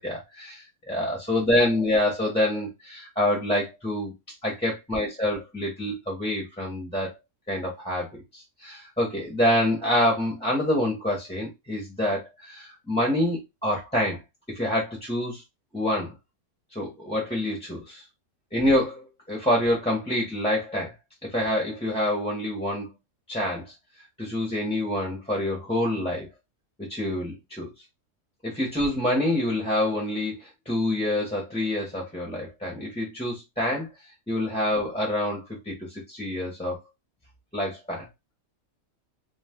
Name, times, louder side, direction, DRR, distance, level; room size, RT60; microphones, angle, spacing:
voice 1, 0.0-4.1 4.4-7.1 7.5-14.2 14.5-15.4 15.7-16.1 16.7-18.0 18.5-20.9 21.3-22.9 23.3-23.7 24.2-26.3 26.9-27.7 28.4-33.9 34.3-36.8 37.5-38.1, left 1 dB, 5° left, 0.8 m, -27 dB
2.5 x 2.4 x 3.5 m
omnidirectional pair, 1.4 m